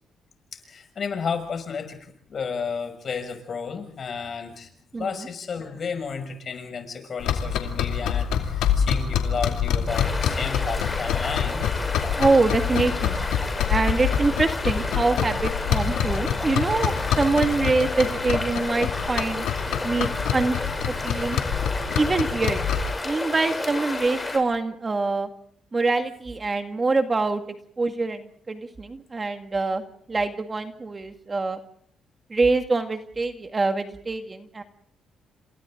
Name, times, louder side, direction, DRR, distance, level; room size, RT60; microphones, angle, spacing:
voice 1, 0.5-2.0 2.3-4.7 5.0-11.6, left 6 dB, 50° left, 6 dB, 6.5 m, -32 dB
sound 1, 7.2-23.0, left 8 dB, 90° left, 2.6 m, -26 dB
sound 2, 9.9-24.4, left 2 dB, 15° left, 7.8 m, -31 dB
voice 2, 12.2-13.2 13.7-19.5 19.8-20.6 21.0-21.4 22.0-22.6 23.0-25.3 25.7-27.4 27.8-29.8 30.1-31.6 32.3-34.6, right 3 dB, 30° right, 6 dB, 2.1 m, -24 dB
30.0 x 27.5 x 3.9 m, 0.65 s
cardioid pair, 90°, 0 cm